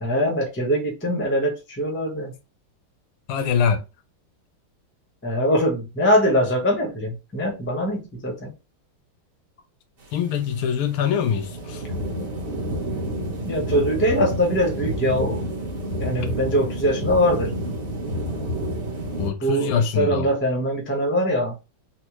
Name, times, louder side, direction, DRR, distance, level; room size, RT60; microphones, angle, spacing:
voice 1, 0.0-2.3 5.2-8.5 13.4-15.5 16.0-17.5 19.4-21.5, equal, 20° left, 0.3 m, -22 dB
voice 2, 3.3-3.8 10.1-11.8 19.2-20.3, left 7 dB, 80° left, 1.5 m, -23 dB
sound 1, 10.0-19.3, equal, 40° right, 0.9 m, -29 dB
4.2 x 2.1 x 3.0 m
omnidirectional pair, 2.3 m